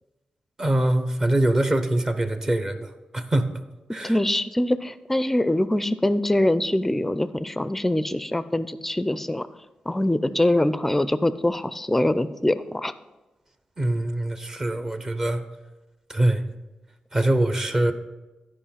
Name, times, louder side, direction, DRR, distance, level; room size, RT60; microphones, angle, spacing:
voice 1, 0.6-3.5 3.9-4.2 13.8-15.4 16.1-16.4 17.1-17.9, right 1 dB, 25° right, 9 dB, 0.7 m, -23 dB
voice 2, 4.0-9.5 9.9-12.9, left 1 dB, 10° left, 14 dB, 0.4 m, -23 dB
12.5 x 5.3 x 5.7 m, 1.1 s
wide cardioid pair, 135°, 2 cm